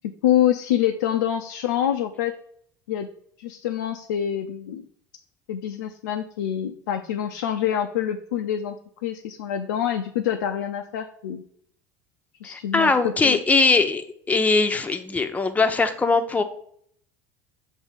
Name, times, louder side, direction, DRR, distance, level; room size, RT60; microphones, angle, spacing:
voice 1, 0.0-2.3 2.9-3.1 3.4-4.9 5.5-8.8 9.0-11.4 12.4-13.4, left 10 dB, 85° left, 4 dB, 0.4 m, -26 dB
voice 2, 12.4-16.4, left 3 dB, 15° left, 6 dB, 0.7 m, -21 dB
7.2 x 2.7 x 5.0 m, 0.64 s
hypercardioid pair, 85°, 10 cm